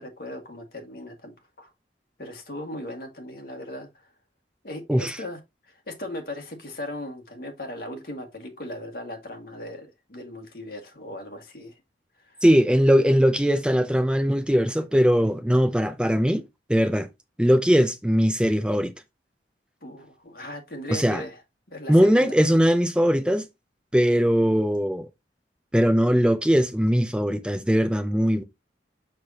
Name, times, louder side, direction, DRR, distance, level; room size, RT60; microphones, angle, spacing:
voice 1, 0.0-1.7 2.2-4.1 4.6-5.4 5.7-11.7 12.3-12.4 19.8-21.4 21.7-22.4, left 1 dB, 55° left, 1.9 m, -38 dB
voice 2, 12.4-16.4 16.7-17.1 17.4-18.9 20.9-21.2 21.9-23.5 23.9-25.1 25.7-28.4, equal, 5° right, 0.4 m, -20 dB
6.5 x 6.1 x 2.8 m
head